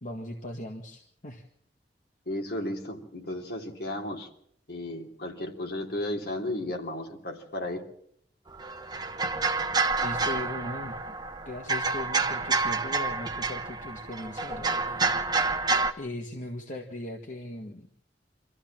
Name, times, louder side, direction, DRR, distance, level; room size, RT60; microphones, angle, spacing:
voice 1, 0.0-1.5 10.0-11.2 11.5-15.6 16.0-17.9, left 1 dB, 45° left, 2 dB, 1.8 m, -39 dB
voice 2, 2.3-4.3 4.7-7.8, left 1 dB, 60° left, 2 dB, 3.2 m, -34 dB
sound 1, 8.5-15.9, right 3 dB, 25° right, 1.2 m, -28 dB
25.5 x 14.5 x 7.5 m, 0.68 s
head